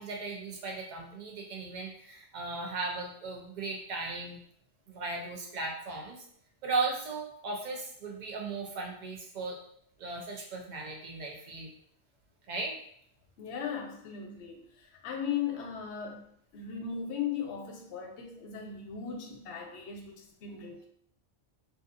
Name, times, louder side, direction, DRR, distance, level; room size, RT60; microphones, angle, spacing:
voice 1, 0.0-4.4 4.9-6.3 6.6-9.6 10.0-11.7 12.5-12.8, right 3 dB, 50° right, 0 dB, 0.6 m, -36 dB
voice 2, 13.4-16.2 16.5-20.9, left 7 dB, 70° left, 2 dB, 0.8 m, -37 dB
2.6 x 2.4 x 2.5 m, 0.64 s
omnidirectional pair, 1.2 m